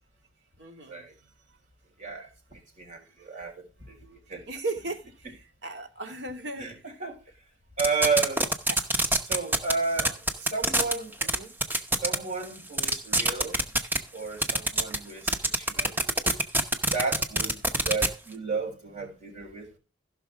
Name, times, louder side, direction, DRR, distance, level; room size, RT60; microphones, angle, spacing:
voice 1, 0.6-1.0 4.5-5.3 5.6-6.7 8.7-8.8 10.0-10.1 11.2-11.5, right 2 dB, 60° right, 2.2 m, -36 dB
voice 2, 2.0-4.4 6.6-7.2 7.8-8.5 9.2-10.2 10.5-11.3 12.0-13.6 14.1-15.9 16.9-17.6 17.8-19.8, right 4 dB, 40° right, 4.4 m, -32 dB
sound 1, 7.8-9.7 10.0-10.9 11.2-11.3 11.6-12.1 12.4-12.5 12.7-14.0 14.4-15.0 15.3-18.1, right 1 dB, 10° right, 0.8 m, -23 dB
15.5 x 6.2 x 3.4 m
head